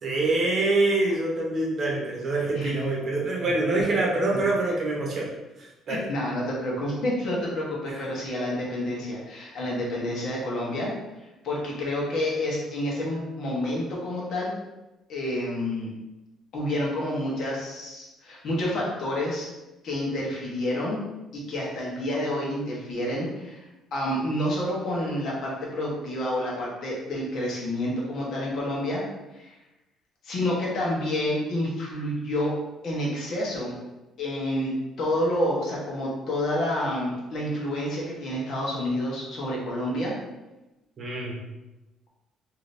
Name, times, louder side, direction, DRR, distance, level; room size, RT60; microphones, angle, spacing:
voice 1, 0.0-5.3 5.6-6.0 7.9-8.0 41.0-41.4, right 2 dB, 35° right, -3 dB, 0.9 m, -25 dB
voice 2, 5.9-10.9 11.4-14.5 15.1-15.9 16.5-19.5 19.8-21.0 21.3-23.7 23.9-29.0 29.3-29.5 30.2-32.5 32.8-33.7 34.2-40.2, left 1 dB, 55° left, -4 dB, 1.1 m, -29 dB
3.7 x 2.8 x 2.6 m, 1.0 s
cardioid pair, 145°, 0 cm